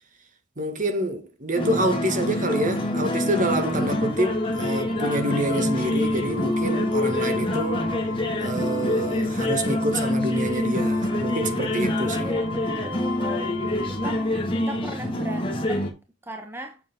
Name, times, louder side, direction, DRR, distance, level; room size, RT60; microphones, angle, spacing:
voice 1, 0.6-7.9 8.4-12.3, right 1 dB, 40° right, 2.0 m, -27 dB
sound 1, 1.5-15.9, left 1 dB, 25° left, 2.2 m, -26 dB
sound 2, 3.2-14.3, left 3 dB, 75° left, 1.8 m, -38 dB
voice 2, 12.1-13.6 13.9-14.2 14.5-16.8, right 1 dB, 10° right, 1.1 m, -38 dB
9.0 x 7.4 x 3.8 m
head